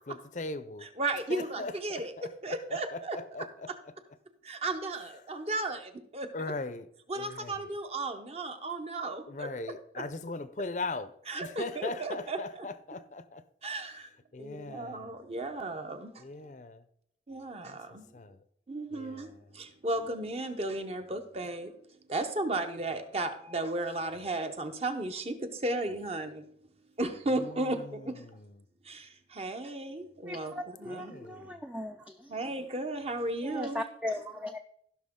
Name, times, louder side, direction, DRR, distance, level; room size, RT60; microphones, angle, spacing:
voice 1, 0.0-0.9 1.3-3.7 6.3-6.9 7.1-7.7 9.3-11.2 11.4-13.4 14.3-15.1 16.2-16.8 17.6-17.8 18.1-18.4 18.9-19.4 27.3-28.6 30.9-31.6, left 3 dB, 40° left, 0.5 m, -40 dB
voice 2, 0.8-3.2 4.4-6.3 7.1-9.5 11.3-12.4 13.6-14.1 14.4-16.5 17.3-18.1 18.7-21.7 22.1-26.5 27.0-28.2 28.8-30.5 30.8-31.2 32.3-33.8, right 2 dB, 35° right, 0.8 m, -35 dB
voice 3, 30.3-32.4 33.4-34.6, left 1 dB, 5° right, 0.4 m, -38 dB
15.5 x 5.9 x 3.7 m
head